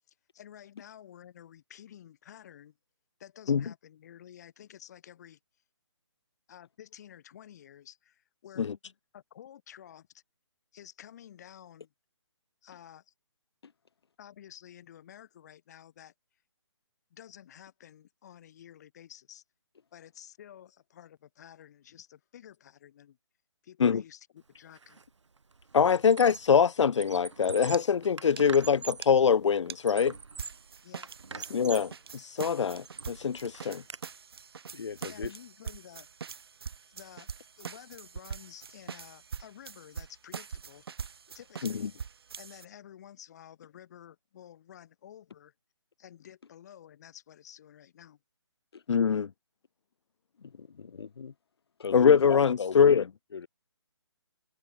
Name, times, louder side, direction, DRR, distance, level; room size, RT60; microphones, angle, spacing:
voice 1, 0.3-2.8 3.2-5.4 6.5-8.7 9.1-10.2 10.7-11.9 12.6-13.1 14.2-16.1 17.1-19.4 19.9-23.2 23.6-25.0 30.8-31.5 35.1-36.1 36.9-40.8 41.3-41.9 42.4-45.5 46.0-48.2, left 10 dB, 35° left, 5.6 m, -51 dB
Squeak, 24.7-25.0 25.4-26.6 26.9-29.1 29.6-30.7 31.0-32.0 32.5-34.0, right 4 dB, 75° right, 7.0 m, -44 dB
voice 2, 25.7-30.1 31.5-33.8 41.6-41.7 48.9-49.3 51.9-53.0, left 7 dB, 80° left, 0.5 m, -23 dB
sound 1, 27.7-27.8 28.1-28.2 28.4-28.5 29.0-29.1 29.7-29.8 30.4-42.6, right 6 dB, 55° right, 2.0 m, -43 dB
voice 3, 34.7-35.3 48.7-48.8 50.4-51.3 51.8-53.0 53.3-53.5, left 6 dB, 55° left, 3.4 m, -38 dB
hypercardioid pair, 165°, 15 cm